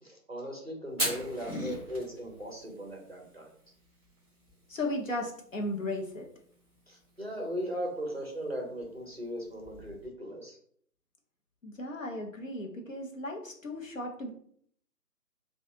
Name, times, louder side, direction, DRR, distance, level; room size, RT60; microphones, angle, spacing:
voice 1, 0.0-3.5 6.9-10.6, equal, 40° right, 0 dB, 0.5 m, -38 dB
Fire, 0.9-10.1, equal, 15° left, 1.4 m, -43 dB
voice 2, 1.4-1.8 4.7-6.2 11.6-14.3, left 1 dB, 55° left, 1 dB, 0.7 m, -35 dB
3.5 x 2.3 x 2.8 m, 0.63 s
hypercardioid pair, 180°, 48 cm